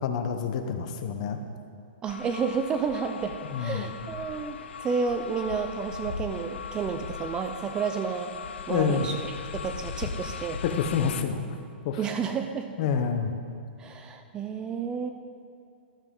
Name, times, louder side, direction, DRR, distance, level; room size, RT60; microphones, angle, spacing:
voice 1, 0.0-1.4 3.5-3.9 8.7-9.1 10.6-11.6 11.8-12.0 12.8-13.3, left 6 dB, 40° left, 7 dB, 0.8 m, -27 dB
voice 2, 2.0-8.3 8.7-9.2 9.5-10.6 12.0-12.7 13.8-15.1, right 6 dB, 15° right, 7 dB, 0.3 m, -31 dB
sound 1, 2.1-11.2, left 6 dB, 80° left, 0.6 m, -38 dB
12.5 x 7.5 x 3.7 m, 2.5 s
hypercardioid pair, 160°, 6 cm